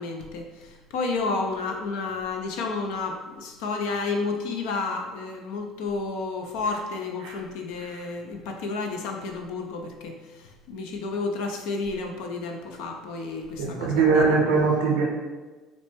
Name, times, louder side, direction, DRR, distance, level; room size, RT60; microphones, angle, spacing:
voice 1, 0.0-14.4, left 3 dB, 75° left, 3 dB, 0.4 m, -31 dB
voice 2, 13.6-15.0, right 4 dB, 80° right, -3 dB, 0.6 m, -21 dB
3.9 x 2.1 x 3.3 m, 1.3 s
hypercardioid pair, 70°, 0 cm